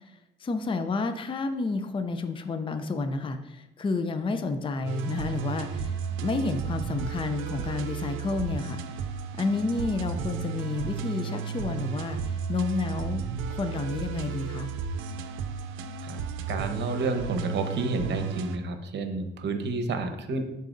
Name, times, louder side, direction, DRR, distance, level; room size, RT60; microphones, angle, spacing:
voice 1, 0.0-8.8 9.4-13.2 13.5-14.7, left 3 dB, 25° left, 8 dB, 0.5 m, -30 dB
sound 1, 4.9-18.6, right 6 dB, 90° right, 0.5 m, -33 dB
voice 2, 16.5-20.4, right 3 dB, 60° right, 7 dB, 1.0 m, -30 dB
11.5 x 4.0 x 2.6 m, 0.91 s
cardioid pair, 90°, 20 cm